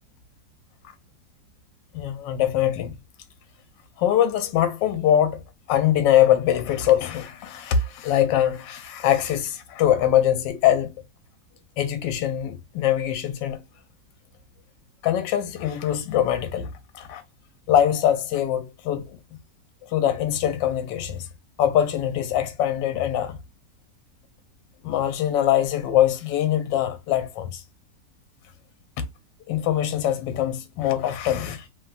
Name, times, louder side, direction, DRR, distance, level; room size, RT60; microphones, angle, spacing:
voice 1, 1.9-3.0 4.0-5.4 5.7-10.9 11.8-13.6 15.0-17.2 17.7-19.4 19.8-21.3 21.6-23.4 24.8-27.6 29.5-31.7, left 10 dB, 85° left, 1.3 m, -23 dB
3.0 x 2.3 x 2.3 m
omnidirectional pair, 1.9 m